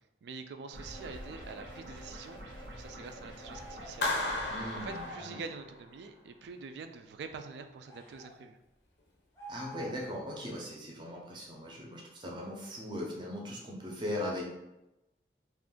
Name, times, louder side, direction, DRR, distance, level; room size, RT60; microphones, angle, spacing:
voice 1, 0.0-4.1 4.7-8.6, right 4 dB, 70° right, 7 dB, 0.3 m, -45 dB
sound 1, 0.7-5.1, equal, 90° right, 0.9 m, -46 dB
sound 2, 3.4-4.0 4.8-5.3 7.9-8.3 9.3-10.1, equal, 15° left, 0.6 m, -47 dB
Clapping, 4.0-5.9, left 2 dB, 75° left, 0.6 m, -34 dB
voice 2, 4.5-5.4 9.5-14.4, left 1 dB, 25° right, -3 dB, 0.6 m, -39 dB
2.5 x 2.4 x 3.6 m, 0.94 s
head